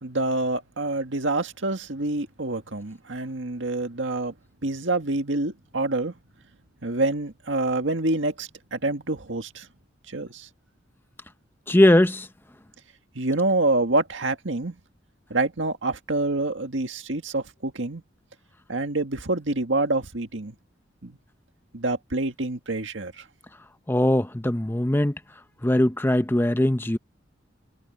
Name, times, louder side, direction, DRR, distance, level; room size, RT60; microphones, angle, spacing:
voice 1, 0.0-4.3 4.6-6.1 6.8-9.7 10.1-10.5 13.2-14.8 15.3-18.0 18.7-20.5 21.0-21.2 21.7-23.2, right 2 dB, 70° right, 1.9 m, -27 dB
voice 2, 11.7-12.3 23.9-25.1 25.6-27.0, left 1 dB, 10° left, 0.7 m, -20 dB
head